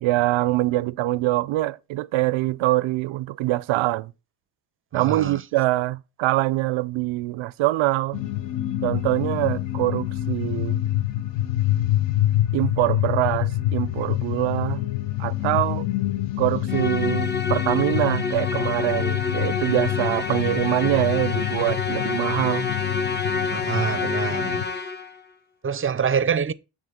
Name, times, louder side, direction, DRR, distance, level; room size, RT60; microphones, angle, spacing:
voice 1, 0.0-4.1 4.9-8.2 8.8-10.8 12.5-14.8 15.2-15.9 16.4-22.7, right 17 dB, 80° right, 0.6 m, -24 dB
voice 2, 4.9-5.4 23.5-24.7 25.6-26.5, right 7 dB, 30° right, 0.5 m, -25 dB
sound 1, 8.1-24.6, left 14 dB, 65° left, 0.8 m, -26 dB
Musical instrument, 16.7-25.2, left 4 dB, 20° left, 0.7 m, -28 dB
8.9 x 3.6 x 5.0 m
cardioid pair, 70°, 47 cm